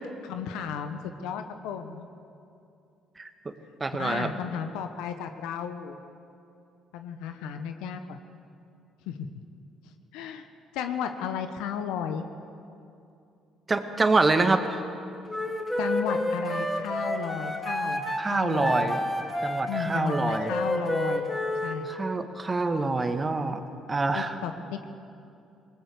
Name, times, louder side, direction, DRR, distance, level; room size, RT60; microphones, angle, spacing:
voice 1, 0.2-2.1 3.9-6.0 6.9-8.2 9.1-9.3 10.1-10.5 10.7-12.3 15.8-18.9 19.7-21.3 21.6-21.9 24.1-24.5, left 7 dB, 80° left, 7 dB, 1.1 m, -34 dB
voice 2, 3.8-4.3 13.7-14.8 18.2-19.0 19.4-20.5 21.9-23.6 23.9-24.4, right 3 dB, 30° right, 7 dB, 1.9 m, -26 dB
Wind instrument woodwind instrument, 15.3-21.8, left 1 dB, 5° left, 3.3 m, -30 dB
20.5 x 19.5 x 8.1 m, 2.7 s
hypercardioid pair, 60°, 0 cm